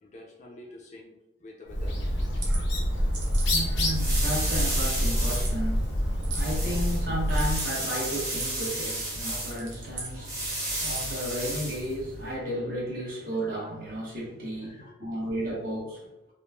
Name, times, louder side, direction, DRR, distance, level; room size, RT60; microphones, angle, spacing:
voice 1, 0.0-2.4 3.0-3.4 13.0-13.2 14.3-15.5, left 2 dB, 40° left, -1 dB, 0.4 m, -49 dB
Bird, 1.7-7.7, equal, 85° left, 0.6 m, -27 dB
sound 1, 2.2-2.6 3.1-3.5 4.0-4.5 5.3-5.5 6.2-6.5 7.2-7.7 8.2-8.7 9.4-10.1 10.7-11.2, right 3 dB, 75° right, 0.7 m, -39 dB
voice 2, 2.4-16.0, equal, 50° right, -5 dB, 0.9 m, -34 dB
sound 2, 3.1-12.3, right 1 dB, 20° right, 0.8 m, -34 dB
3.0 x 2.1 x 2.2 m, 0.93 s
head